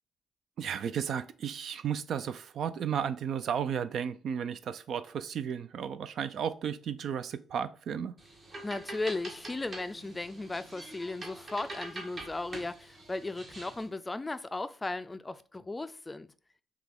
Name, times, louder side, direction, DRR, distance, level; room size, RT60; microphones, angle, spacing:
voice 1, 0.6-8.1, right 8 dB, 65° right, 0.4 m, -34 dB
sound 1, 8.2-13.9, right 2 dB, 45° right, 1.3 m, -45 dB
voice 2, 8.6-16.3, left 2 dB, 20° left, 0.3 m, -36 dB
5.9 x 2.3 x 3.4 m
cardioid pair, 90°, 0 cm